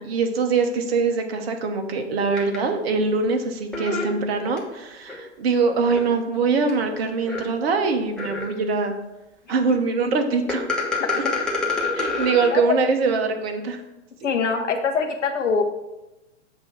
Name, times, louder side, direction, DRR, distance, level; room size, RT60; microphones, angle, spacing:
voice 1, 0.0-8.9 9.5-10.7 11.9-13.8, right 4 dB, 55° right, 5 dB, 1.0 m, -23 dB
sound 1, 2.4-2.6 3.7-4.6 5.1-5.2 6.0-6.1 6.7-6.8 7.2-7.4 8.2-8.7 10.5-12.5, left 3 dB, ahead, 1.1 m, -26 dB
voice 2, 14.2-15.6, left 5 dB, 75° left, 4 dB, 1.0 m, -23 dB
7.9 x 2.7 x 6.0 m, 0.97 s
hypercardioid pair, 120°, 37 cm